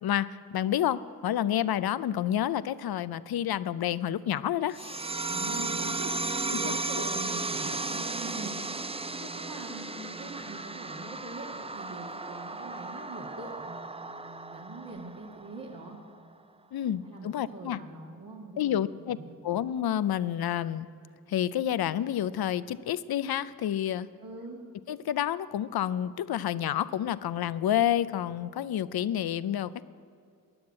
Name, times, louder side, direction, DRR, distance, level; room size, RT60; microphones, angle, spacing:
voice 1, 0.0-5.0 6.5-6.8 9.2-9.3 16.7-17.8 18.6-19.2 19.4-20.9 21.3-24.1 24.9-29.9, left 11 dB, 75° left, 16 dB, 0.6 m, -29 dB
sound 1, 4.7-15.8, right 3 dB, 15° right, 0.5 m, -35 dB
voice 2, 5.3-16.0 17.0-19.3 24.2-24.6, right 2 dB, 60° right, -4 dB, 2.0 m, -43 dB
14.0 x 9.5 x 8.7 m, 2.4 s
cardioid pair, 45°, 37 cm